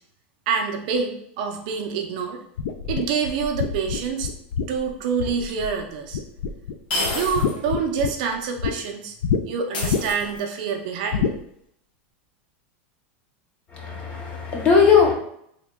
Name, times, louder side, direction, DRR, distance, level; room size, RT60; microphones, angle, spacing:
voice 1, 0.5-2.4 2.8-4.3 4.7-6.2 7.1-9.2 9.4-11.4, right 6 dB, 45° right, 3 dB, 0.4 m, -26 dB
sound 1, 2.6-5.8 6.1-6.7 7.0-8.7 9.2-9.4 9.8-10.3 11.1-11.4, left 6 dB, 80° left, 0.3 m, -26 dB
sound 2, 5.5-5.6 6.9-7.6 8.0-8.1 9.7-10.6, left 2 dB, 55° left, 0.9 m, -29 dB
voice 2, 13.8-15.1, left 6 dB, 20° left, 0 dB, 0.5 m, -18 dB
3.4 x 2.2 x 3.5 m, 0.70 s
supercardioid pair, 180°, 6 cm